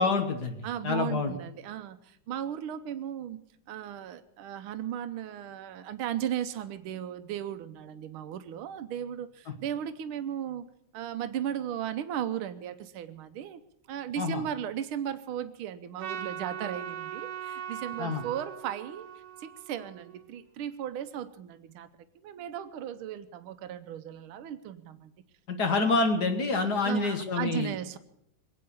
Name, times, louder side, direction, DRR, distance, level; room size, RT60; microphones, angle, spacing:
voice 1, 0.0-1.3 14.2-14.4 18.0-18.2 25.5-27.7, left 3 dB, 55° left, 6 dB, 1.8 m, -27 dB
voice 2, 0.6-3.4 3.7-10.6 10.9-13.6 13.9-19.1 19.4-21.9 22.1-25.1 25.7-25.8 26.8-28.0, right 10 dB, 85° right, 11 dB, 1.6 m, -36 dB
Trumpet, 16.0-20.4, right 9 dB, 60° right, 1.4 m, -40 dB
22.0 x 8.7 x 7.0 m, 0.74 s
omnidirectional pair, 2.3 m